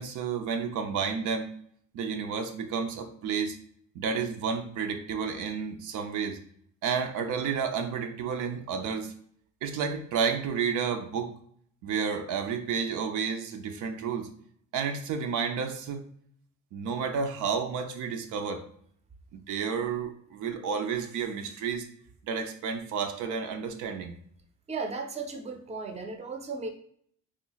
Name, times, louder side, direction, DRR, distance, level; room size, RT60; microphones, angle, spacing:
voice 1, 0.0-1.5 1.9-3.6 3.9-6.4 6.8-9.1 9.6-11.3 11.8-14.3 14.7-16.0 16.7-18.6 19.3-21.9 22.2-24.2, right 6 dB, 80° right, 5 dB, 0.5 m, -31 dB
voice 2, 24.7-26.7, right 4 dB, 20° right, 5 dB, 0.5 m, -35 dB
3.0 x 2.1 x 3.8 m, 0.63 s
cardioid pair, 90°, 30 cm